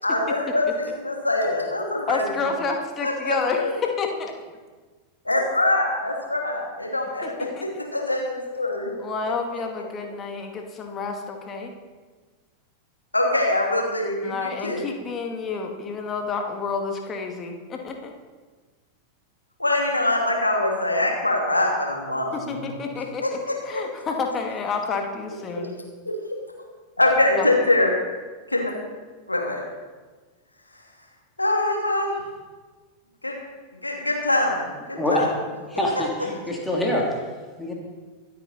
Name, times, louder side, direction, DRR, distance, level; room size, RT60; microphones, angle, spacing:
voice 1, 0.0-2.5 3.0-3.8 5.2-7.5 7.9-8.9 9.2-9.3 13.1-14.9 19.6-22.7 23.2-23.8 26.0-26.1 27.0-27.9 28.5-28.7 29.3-29.6 31.4-32.2 33.2-33.3 33.8-35.3, left 2 dB, 85° left, 0 dB, 2.7 m, -24 dB
voice 2, 2.1-4.3 7.2-7.3 7.6-7.7 9.0-11.7 14.2-18.1 22.3-23.4 23.6-25.7 27.4-27.5, left 4 dB, 25° left, 3 dB, 2.1 m, -29 dB
voice 3, 35.7-37.0 37.6-37.7, left 1 dB, 5° left, -2 dB, 2.9 m, -24 dB
24.0 x 8.6 x 4.2 m, 1.4 s
figure-of-eight pair, 90°, 0 cm